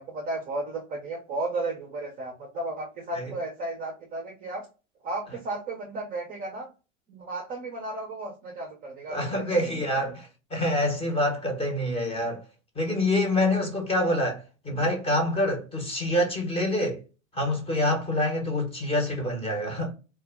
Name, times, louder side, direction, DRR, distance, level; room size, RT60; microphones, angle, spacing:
voice 1, 0.0-4.7 5.0-6.7 7.1-10.1, right 2 dB, 20° right, 0.4 m, -34 dB
voice 2, 9.1-12.4 12.8-17.0 17.3-19.9, left 1 dB, 15° left, 0.7 m, -26 dB
2.1 x 2.0 x 3.3 m
hypercardioid pair, 110°, 40 cm